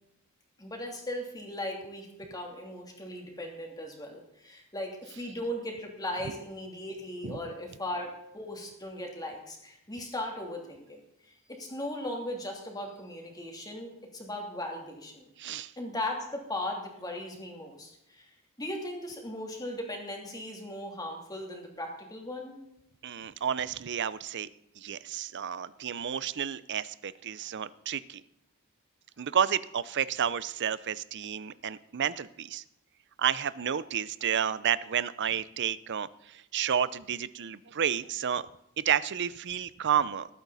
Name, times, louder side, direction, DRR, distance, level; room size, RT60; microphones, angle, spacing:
voice 1, 0.6-15.3 15.8-18.3 18.6-22.6, left 1 dB, 15° left, 1 dB, 2.9 m, -38 dB
voice 2, 15.4-15.7 23.0-24.5 24.8-28.2 29.2-32.6 33.2-38.4 38.8-40.3, right 8 dB, 55° right, 18 dB, 0.5 m, -31 dB
20.0 x 9.0 x 4.1 m, 0.81 s
head